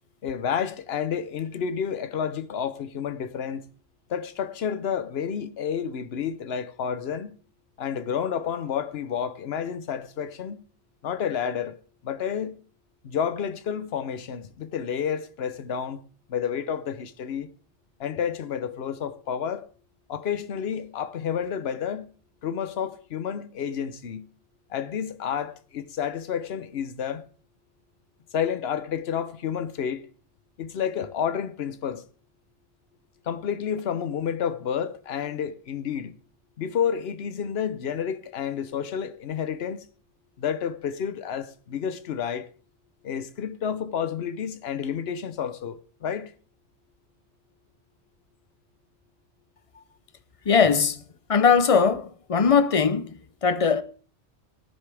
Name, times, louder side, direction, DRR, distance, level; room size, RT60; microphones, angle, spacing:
voice 1, 0.2-3.6 4.1-7.4 7.8-10.6 11.0-11.8 12.0-12.6 13.0-16.0 16.3-17.5 18.0-19.7 20.1-22.1 22.4-24.3 24.7-27.2 28.3-30.0 30.6-32.0 33.3-36.2 36.6-39.9 40.4-42.5 43.0-46.3, left 8 dB, 60° left, 1.0 m, -30 dB
voice 2, 50.5-51.0 51.3-53.8, left 6 dB, 40° left, 0.5 m, -20 dB
19.0 x 10.5 x 3.4 m
omnidirectional pair, 1.2 m